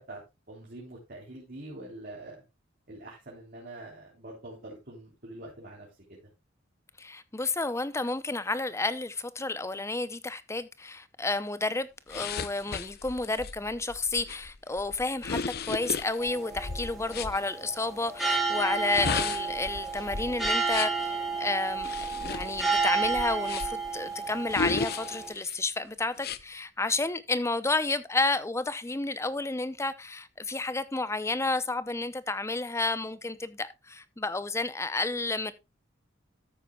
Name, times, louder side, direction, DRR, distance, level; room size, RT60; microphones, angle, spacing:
voice 1, 0.5-2.4 2.9-6.2, right 1 dB, 50° right, 3.7 m, -45 dB
voice 2, 7.0-35.5, left 3 dB, 15° left, 0.7 m, -31 dB
sound 1, 12.1-17.4 18.7-21.1 21.8-23.9 24.5-25.6 26.2-26.4, left 5 dB, 55° left, 0.6 m, -35 dB
sound 2, 16.2-25.3, right 4 dB, ahead, 4.3 m, -31 dB
13.5 x 9.0 x 2.3 m
head